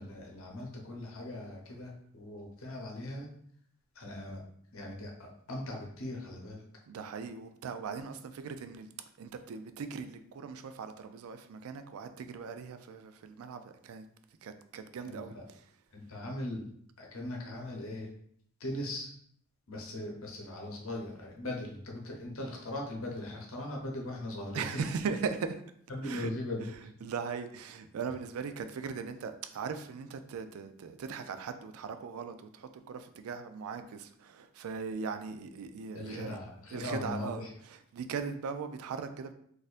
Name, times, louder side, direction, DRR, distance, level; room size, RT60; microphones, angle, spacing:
voice 1, 0.0-3.3 3.9-4.4 4.7-6.6 15.0-15.4 15.9-16.6 17.0-18.1 18.6-19.1 19.7-24.8 25.9-26.9 35.9-37.5, left 1 dB, 75° left, 0.8 m, -39 dB
voice 2, 6.9-8.9 9.2-14.0 14.4-15.6 24.5-25.6 26.0-26.3 27.0-36.4 36.7-37.4 37.7-39.3, right 5 dB, 80° right, 0.3 m, -39 dB
4.1 x 2.5 x 2.4 m
head